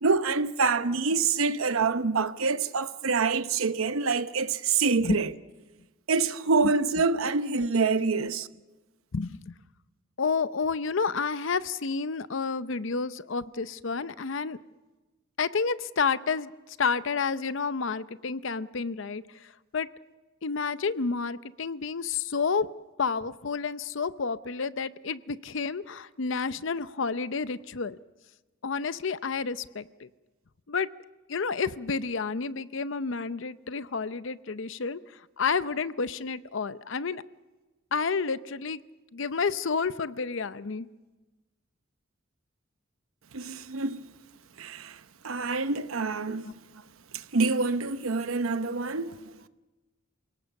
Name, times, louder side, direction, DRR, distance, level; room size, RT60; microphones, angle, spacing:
voice 1, 0.0-5.3 6.1-8.5 43.3-44.1 44.6-46.5 47.1-49.3, right 4 dB, 90° right, 0.9 m, -26 dB
voice 2, 9.1-9.5 10.2-14.6 15.4-16.5 16.8-19.2 19.7-19.9 20.4-22.7 23.0-28.0 28.6-30.1 30.7-30.9 31.3-35.0 35.4-37.2 37.9-38.8 39.1-40.9 46.4-46.5 48.9-49.0, left 5 dB, 65° left, 0.7 m, -30 dB
28.0 x 18.0 x 7.0 m
head